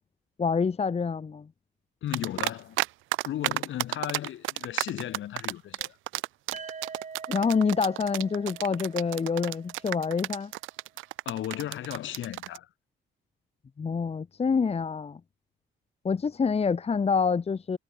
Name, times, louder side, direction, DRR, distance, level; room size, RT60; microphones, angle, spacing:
voice 1, 0.4-1.5 7.3-10.5 13.8-15.2 16.0-17.8, left 5 dB, 30° left, 1.2 m, -27 dB
voice 2, 2.0-2.8 3.2-6.0 11.2-12.7, left 12 dB, 75° left, 4.8 m, -35 dB
Group of people - Clapping - Outside, 2.1-2.9 3.1-12.6, right 18 dB, 85° right, 0.4 m, -31 dB
sound 1, 6.5-10.4, right 5 dB, 35° right, 5.0 m, -45 dB
cardioid pair, 90°, 20 cm